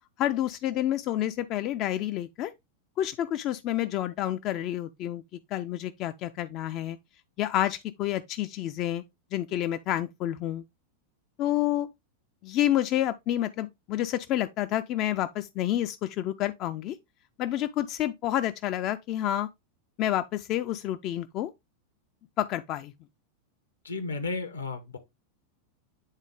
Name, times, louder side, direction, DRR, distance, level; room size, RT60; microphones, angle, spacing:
voice 1, 0.2-2.5 3.0-5.2 5.5-7.0 7.4-9.0 9.3-10.6 11.4-11.9 12.4-17.0 17.4-19.5 20.0-21.5 22.4-22.9, left 13 dB, 40° left, 0.4 m, -29 dB
voice 2, 23.8-25.0, left 3 dB, 75° left, 0.9 m, -33 dB
8.1 x 3.7 x 3.4 m
figure-of-eight pair, 90°, 0 cm